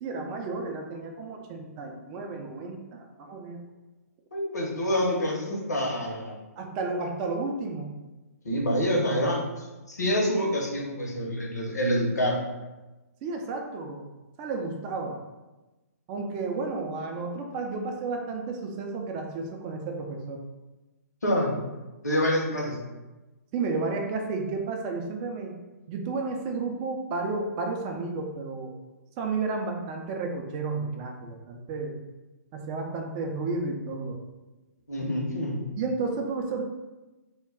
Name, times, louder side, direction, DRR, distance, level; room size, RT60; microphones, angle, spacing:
voice 1, 0.0-3.6 6.6-7.9 13.2-14.1 14.4-15.2 16.1-20.4 23.5-25.6 25.9-28.7 29.2-32.0 32.5-34.2 35.8-36.6, right 3 dB, 25° right, 2 dB, 0.3 m, -32 dB
voice 2, 4.3-6.4 8.4-12.4 16.7-16.8 21.2-21.5 22.0-22.8 34.9-35.6, equal, 75° left, -2 dB, 0.7 m, -27 dB
2.2 x 2.2 x 3.5 m, 1.1 s
figure-of-eight pair, 125°, 9 cm